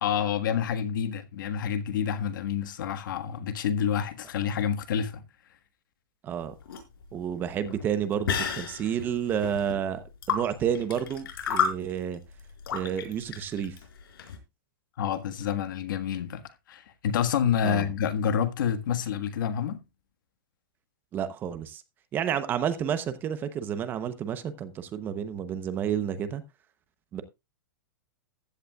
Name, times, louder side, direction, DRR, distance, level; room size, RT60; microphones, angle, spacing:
voice 1, 0.0-5.2 15.0-19.8, left 8 dB, 60° left, 1.6 m, -28 dB
voice 2, 6.2-6.5 7.1-12.2 12.7-13.8 17.6-17.9 21.1-21.8 22.1-26.4 27.1-27.2, right 9 dB, 15° right, 0.8 m, -30 dB
sound 1, 6.4-14.4, left 7 dB, 85° left, 4.5 m, -33 dB
15.0 x 11.0 x 2.3 m
supercardioid pair, 170°, 12 cm